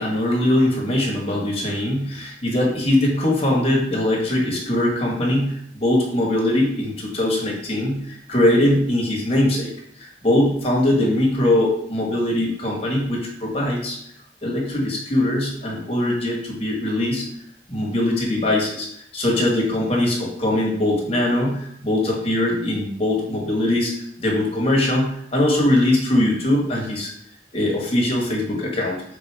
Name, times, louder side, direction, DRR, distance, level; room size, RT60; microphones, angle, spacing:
voice 1, 0.0-9.7 10.0-14.0 14.4-17.2 17.7-27.1 27.5-29.0, left 1 dB, 35° left, -2 dB, 1.1 m, -21 dB
3.7 x 3.0 x 4.5 m, 0.70 s
head